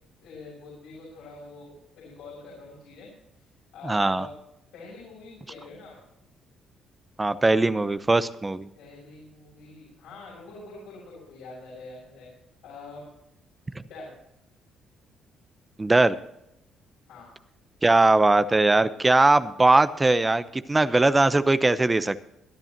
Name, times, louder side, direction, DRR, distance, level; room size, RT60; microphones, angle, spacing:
voice 1, 0.2-3.1 3.7-4.3 4.7-6.0 8.7-12.3 12.6-13.0 13.8-14.1 17.1-17.3 20.7-20.8, left 3 dB, 80° left, -5 dB, 5.9 m, -44 dB
voice 2, 3.8-4.3 7.2-8.7 15.8-16.2 17.8-22.2, right 2 dB, 20° right, 13 dB, 0.8 m, -20 dB
21.5 x 10.5 x 2.9 m, 0.81 s
supercardioid pair, 70°, 0 cm